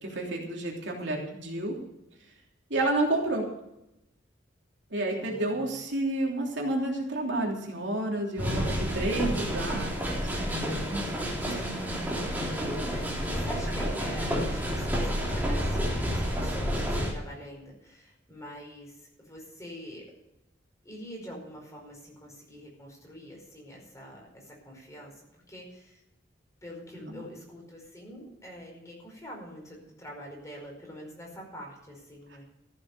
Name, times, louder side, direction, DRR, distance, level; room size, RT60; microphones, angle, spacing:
voice 1, 0.0-1.8 2.7-3.5 4.9-11.1 11.4-11.5 27.0-27.2, right 2 dB, 65° right, -1 dB, 3.3 m, -30 dB
voice 2, 1.1-1.5 5.2-5.8 11.2-13.0 13.3-20.1 20.8-26.0 26.6-32.5, equal, 15° left, -1 dB, 5.0 m, -45 dB
sound 1, 8.4-17.1, equal, 10° right, 3.2 m, -30 dB
14.5 x 8.4 x 6.9 m, 0.86 s
head